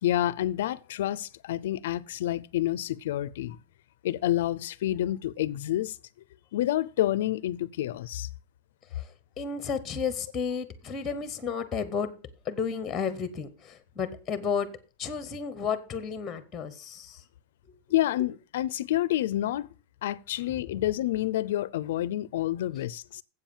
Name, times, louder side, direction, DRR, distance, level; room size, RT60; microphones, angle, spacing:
voice 1, 0.0-3.6 4.0-6.0 6.5-8.3 17.9-19.7 20.0-23.2, left 13 dB, 75° left, 0.4 m, -28 dB
voice 2, 9.4-12.1 12.5-14.7 15.0-17.2 20.5-20.6, left 6 dB, 15° left, 0.8 m, -32 dB
7.9 x 7.2 x 7.1 m
supercardioid pair, 175°, 0 cm